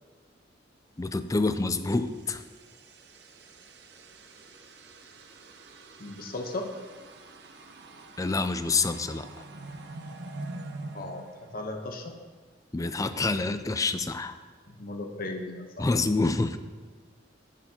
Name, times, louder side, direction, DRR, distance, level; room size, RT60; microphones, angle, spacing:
voice 1, 1.0-2.4 8.2-9.4 12.7-14.4 15.8-16.6, left 3 dB, 20° left, 10 dB, 0.4 m, -27 dB
sound 1, 1.6-12.2, right 2 dB, 60° right, 0.7 m, -45 dB
voice 2, 6.0-6.7 10.9-11.3 11.5-12.1 14.7-15.9, left 2 dB, 50° left, 4 dB, 0.9 m, -36 dB
15.0 x 6.7 x 2.9 m, 1.4 s
head